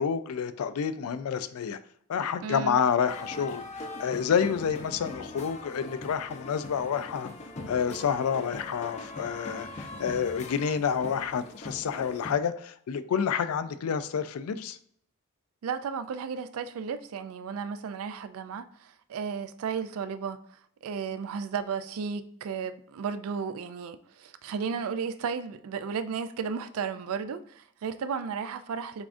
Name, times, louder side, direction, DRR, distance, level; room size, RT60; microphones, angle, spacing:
voice 1, 0.0-1.8 2.1-7.3 7.7-14.8, left 7 dB, 85° left, 0.4 m, -29 dB
voice 2, 2.4-2.8 15.6-29.1, right 6 dB, 75° right, 0.3 m, -34 dB
sound 1, 3.1-12.3, left 2 dB, 30° left, 0.5 m, -41 dB
6.9 x 2.4 x 2.5 m
head